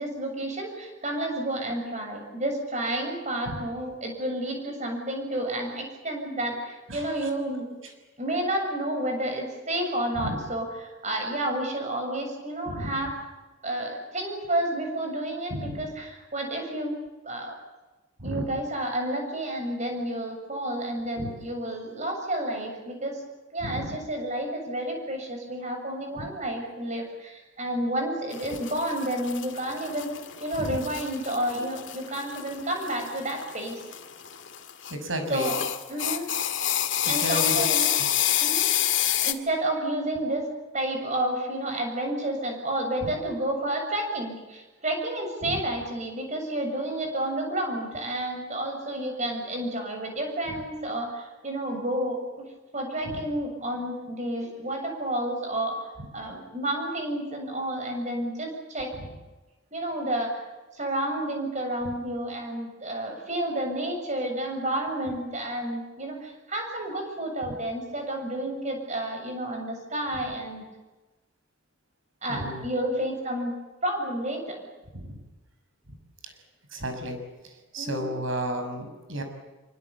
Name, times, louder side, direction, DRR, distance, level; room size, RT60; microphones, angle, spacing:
voice 1, 0.0-7.8 8.2-13.1 13.6-16.9 17.2-17.6 18.2-23.2 23.5-30.1 30.4-33.8 35.3-35.6 35.9-36.3 37.1-37.9 38.4-38.7 39.2-52.4 52.7-55.9 56.1-58.9 59.7-60.4 60.7-70.7 72.2-73.5 73.8-74.6 77.8-78.1, right 1 dB, 35° right, 3 dB, 7.2 m, -30 dB
voice 2, 6.9-7.3 7.8-7.9 10.1-10.4 12.6-12.9 15.5-15.9 18.2-18.6 21.1-21.4 23.6-24.0 26.1-26.3 28.5-28.6 30.6-30.8 34.9-35.5 37.0-37.7 43.0-43.1 45.4-45.6 53.1-53.2 56.0-56.1 59.0-59.2 61.8-62.0 67.4-67.6 70.1-70.2 72.3-72.6 74.9-75.2 76.2-76.3 76.7-77.2 77.4-79.2, equal, 70° right, 6 dB, 6.2 m, -33 dB
sound 1, 28.3-34.9 35.3-39.3, left 11 dB, 60° left, 2.0 m, -28 dB
25.5 x 24.5 x 8.4 m, 1.1 s
head